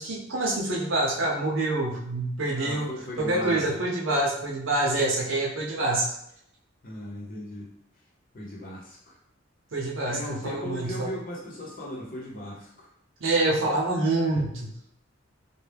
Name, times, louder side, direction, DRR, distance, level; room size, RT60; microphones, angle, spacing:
voice 1, 0.0-2.9 3.2-6.1 9.7-11.1 13.2-14.7, right 2 dB, 70° right, -2 dB, 0.7 m, -26 dB
voice 2, 2.5-3.8 6.8-7.7 8.3-9.2 10.0-12.9, left 1 dB, 40° left, -4 dB, 0.9 m, -37 dB
2.6 x 2.3 x 3.3 m, 0.74 s
head